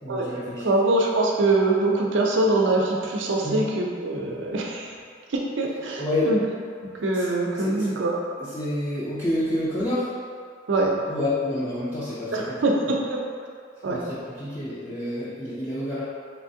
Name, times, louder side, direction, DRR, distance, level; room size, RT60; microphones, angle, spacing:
voice 1, 0.0-0.7 3.4-3.6 6.0-6.3 7.1-7.3 7.6-7.9 8.4-10.1 11.1-12.6 13.9-16.0, left 1 dB, 15° left, -11 dB, 0.4 m, -28 dB
voice 2, 0.6-5.0 5.3-6.4 7.0-8.2 10.7-10.9 12.3-13.0 13.8-14.0, right 2 dB, 80° right, -1 dB, 0.5 m, -23 dB
3.4 x 3.1 x 2.6 m, 2.1 s
head